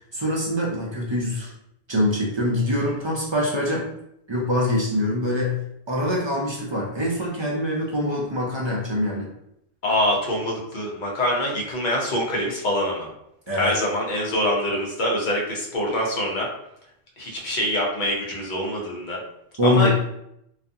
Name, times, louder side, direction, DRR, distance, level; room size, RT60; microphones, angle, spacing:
voice 1, 0.1-1.5 1.9-3.9 4.3-5.6 5.9-9.3 13.5-13.7 19.6-19.9, left 1 dB, 40° right, -3 dB, 0.4 m, -24 dB
voice 2, 9.8-13.1 13.6-16.5 17.2-19.2 19.6-19.9, left 1 dB, 55° left, -2 dB, 0.8 m, -24 dB
2.4 x 2.4 x 2.6 m, 0.76 s
omnidirectional pair, 1.0 m